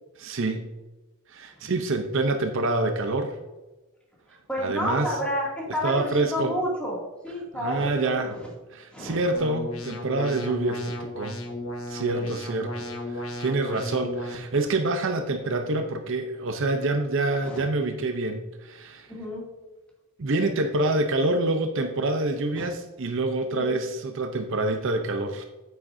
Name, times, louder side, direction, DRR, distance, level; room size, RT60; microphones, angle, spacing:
voice 1, 0.2-0.7 1.3-3.4 4.6-5.1 5.8-6.6 7.5-8.4 8.7-11.4 11.9-19.1 20.2-25.4, right 2 dB, 55° right, 6 dB, 0.7 m, -27 dB
voice 2, 4.5-7.0 7.2-8.5 8.9-9.2 12.1-12.3 17.4-17.6 19.1-19.4 22.6-22.7 23.5-23.8, equal, 5° left, -4 dB, 2.4 m, -30 dB
sound 1, 9.3-14.3, left 1 dB, 70° left, 1.3 m, -35 dB
9.1 x 8.7 x 2.7 m, 1.1 s
head